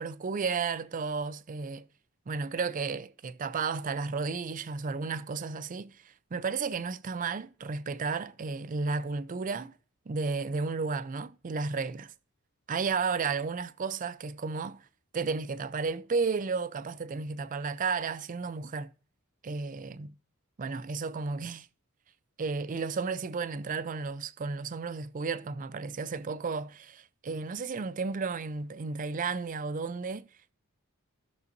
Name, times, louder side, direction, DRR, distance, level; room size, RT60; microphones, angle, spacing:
voice 1, 0.0-1.8 2.3-6.0 6.3-9.7 10.1-12.1 12.7-14.8 15.1-18.9 19.4-20.1 20.6-21.7 22.4-30.3, right 4 dB, 40° right, 0.4 m, -33 dB
15.0 x 6.1 x 2.6 m
head